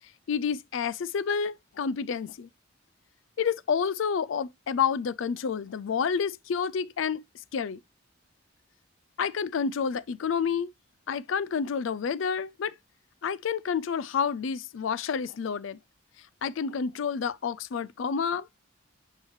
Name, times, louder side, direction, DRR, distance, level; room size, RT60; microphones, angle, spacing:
voice 1, 0.3-2.5 3.4-7.2 7.5-7.8 9.2-10.7 11.1-12.7 13.2-15.8 16.4-18.5, left 6 dB, 75° left, 0.4 m, -29 dB
9.5 x 4.7 x 3.2 m
head